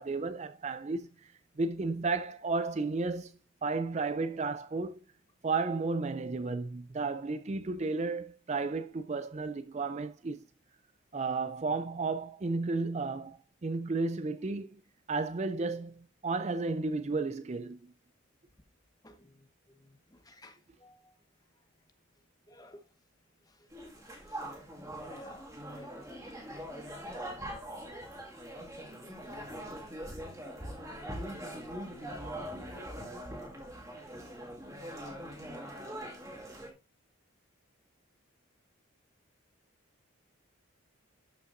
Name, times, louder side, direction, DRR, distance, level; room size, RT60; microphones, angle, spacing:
voice 1, 0.0-5.0 5.4-10.5 11.1-14.8 15.1-17.9, right 3 dB, 30° right, 0.4 m, -33 dB
voice 2, 20.1-21.1 22.5-22.8 24.3-24.4 24.9-26.0 26.5-26.6, left 1 dB, 20° left, 1.0 m, -54 dB
sound 1, 23.7-36.7, equal, 15° right, 2.0 m, -42 dB
12.5 x 5.6 x 2.6 m
head